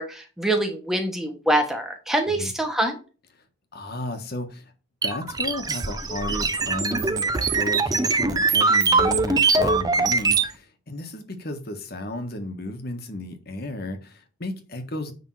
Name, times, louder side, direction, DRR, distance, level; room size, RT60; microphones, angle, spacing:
voice 1, 0.0-3.0, right 1 dB, ahead, 1.3 m, -25 dB
voice 2, 3.7-4.7 5.0-15.1, left 1 dB, 50° left, 1.4 m, -33 dB
sound 1, 5.0-10.5, right 4 dB, 20° right, 0.6 m, -22 dB
9.5 x 3.7 x 4.7 m
head